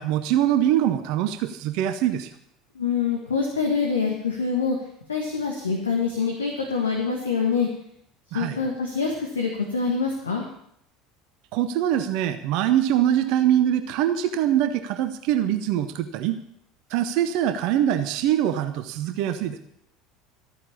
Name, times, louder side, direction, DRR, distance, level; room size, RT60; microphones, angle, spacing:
voice 1, 0.0-2.3 8.3-8.6 11.5-16.4 16.9-19.6, right 11 dB, 55° right, 10 dB, 0.8 m, -23 dB
voice 2, 2.7-4.8 5.1-7.7 8.3-10.4, left 5 dB, 75° left, 1 dB, 1.6 m, -25 dB
13.5 x 9.0 x 7.1 m, 0.72 s
figure-of-eight pair, 70°, 0 cm